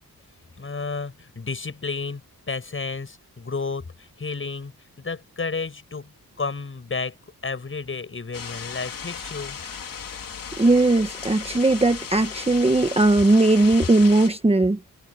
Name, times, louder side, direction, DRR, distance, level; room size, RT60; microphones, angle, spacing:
voice 1, 0.6-2.2 2.5-4.7 5.0-6.1 6.4-7.1 7.4-9.6, left 4 dB, 35° left, 6.8 m, -31 dB
sound 1, 8.3-14.3, left 6 dB, 65° left, 3.8 m, -36 dB
voice 2, 10.6-14.8, right 2 dB, 15° right, 1.2 m, -18 dB
wide cardioid pair, 145°, 36 cm